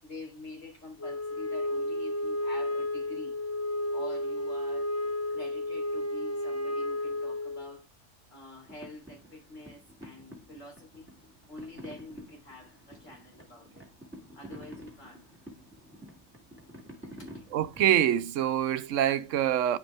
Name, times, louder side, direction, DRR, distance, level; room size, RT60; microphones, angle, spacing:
voice 1, 0.0-3.4 3.9-7.9 8.3-11.1 11.5-13.8 14.3-15.3 17.2-17.3, left 1 dB, 85° left, 3.9 m, -47 dB
Wind instrument woodwind instrument, 1.0-7.8, left 1 dB, 25° left, 0.3 m, -32 dB
sound 1, 8.6-17.9, equal, 10° right, 2.3 m, -49 dB
voice 2, 17.5-19.8, right 11 dB, 85° right, 1.0 m, -25 dB
10.5 x 5.2 x 3.4 m
omnidirectional pair, 1.3 m